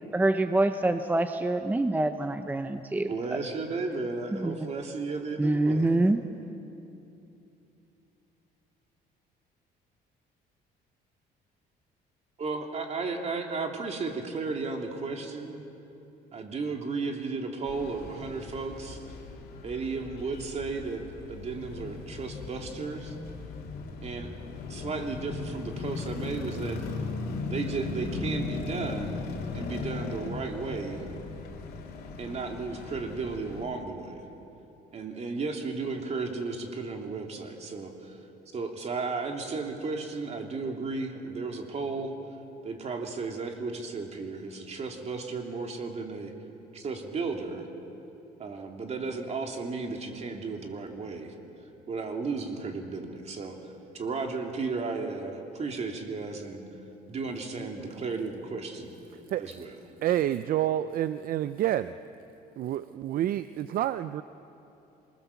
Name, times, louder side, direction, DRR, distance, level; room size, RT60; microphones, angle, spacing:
voice 1, 0.1-3.1 4.4-4.7 5.4-6.2, right 2 dB, 10° right, 9 dB, 0.7 m, -26 dB
voice 2, 3.1-5.9 12.4-15.7 16.3-19.0 19.6-21.0 21.3-23.2 24.0-24.3 24.7-26.8 27.5-31.0 32.2-34.2 34.9-38.2 38.5-42.1 42.6-46.3 46.7-47.7 48.4-51.3 51.9-53.6 53.9-56.6 57.1-58.9 59.4-59.8, right 4 dB, 40° right, 3 dB, 2.9 m, -34 dB
sound 1, 17.6-33.6, left 4 dB, 70° left, 3.0 m, -38 dB
voice 3, 60.0-61.9 62.6-64.2, right 12 dB, 60° right, 13 dB, 0.5 m, -28 dB
26.5 x 20.0 x 7.1 m, 2.9 s
cardioid pair, 110°, 17 cm